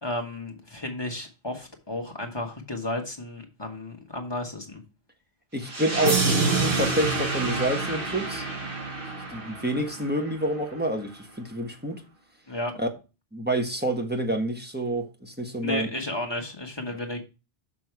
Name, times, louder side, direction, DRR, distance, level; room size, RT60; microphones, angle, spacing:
voice 1, 0.0-4.8 12.5-12.7 15.6-17.2, left 1 dB, 25° left, 1.5 m, -33 dB
voice 2, 5.5-8.4 9.3-12.0 12.8-12.9 13.3-15.9, right 1 dB, 10° right, 1.1 m, -28 dB
sound 1, 5.6-10.6, right 3 dB, 55° right, 1.8 m, -27 dB
6.2 x 6.1 x 4.6 m
omnidirectional pair, 1.1 m